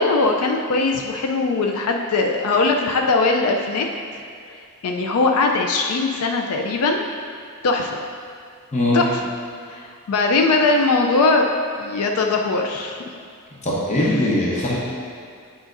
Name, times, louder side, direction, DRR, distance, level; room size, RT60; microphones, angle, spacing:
voice 1, 0.0-3.9 4.8-7.0 7.6-8.0 8.9-9.2 9.7-11.5 11.8-13.0, left 3 dB, 80° left, 2 dB, 0.4 m, -20 dB
voice 2, 8.7-9.0 13.6-14.8, left 1 dB, 30° left, -5 dB, 0.8 m, -20 dB
8.8 x 5.0 x 2.5 m, 2.2 s
head